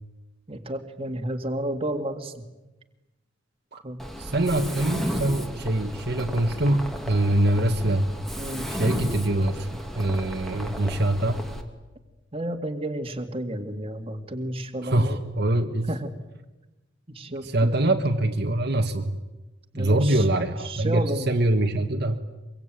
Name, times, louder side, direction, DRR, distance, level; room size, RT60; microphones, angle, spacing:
voice 1, 0.5-2.5 3.7-4.0 8.4-8.7 12.3-15.2 15.9-16.1 17.1-17.8 19.7-21.4, right 1 dB, 30° right, 5 dB, 2.2 m, -32 dB
Mechanisms, 4.0-11.6, equal, ahead, 2.6 m, -34 dB
voice 2, 4.2-8.1 8.8-9.7 9.9-11.4 14.8-15.9 17.4-19.1 19.8-22.2, right 1 dB, 55° right, 4 dB, 1.6 m, -24 dB
24.5 x 23.0 x 9.3 m, 1.1 s
head